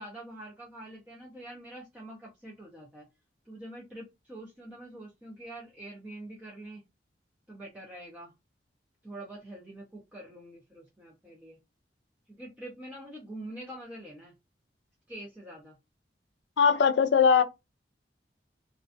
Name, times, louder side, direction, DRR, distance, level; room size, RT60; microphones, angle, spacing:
voice 1, 0.0-3.1 3.4-6.8 7.5-8.3 9.0-11.6 12.3-14.3 15.1-15.8, right 1 dB, 10° right, 0.5 m, -45 dB
voice 2, 16.6-17.4, left 6 dB, 85° left, 0.4 m, -20 dB
2.4 x 2.2 x 2.5 m
head